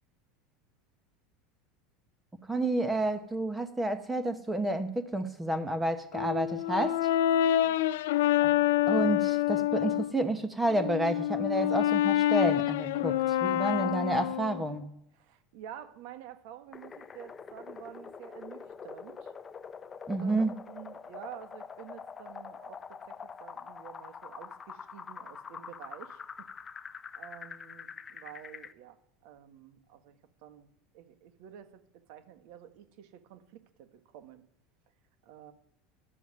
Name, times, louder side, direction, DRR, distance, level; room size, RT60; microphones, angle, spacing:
voice 1, 2.4-7.0 8.4-8.5 8.9-14.9 20.1-20.6, right 1 dB, 10° right, 1.0 m, -30 dB
Brass instrument, 6.1-10.1 10.7-14.7, left 13 dB, 85° left, 0.5 m, -27 dB
voice 2, 7.3-7.9 13.4-14.0 15.2-19.3 20.2-26.2 26.9-30.2 30.4-30.7 30.9-31.8 32.1-34.4 35.2-35.5, right 10 dB, 70° right, 1.5 m, -49 dB
sound 1, 16.7-28.7, left 6 dB, 25° left, 0.6 m, -45 dB
11.5 x 7.1 x 8.4 m
supercardioid pair, 125°, 0 cm